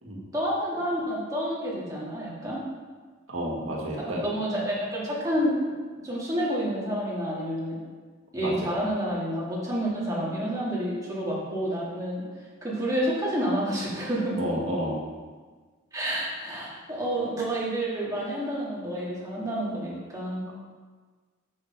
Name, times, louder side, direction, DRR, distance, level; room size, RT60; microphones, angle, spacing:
voice 1, 0.3-2.6 4.2-5.6 6.0-7.8 8.3-12.2 12.6-14.4 15.9-20.5, equal, 15° right, -6 dB, 1.7 m, -29 dB
voice 2, 3.3-4.3 8.3-8.7 14.4-15.0, equal, 90° right, -2 dB, 1.6 m, -30 dB
6.4 x 5.6 x 4.3 m, 1.4 s
head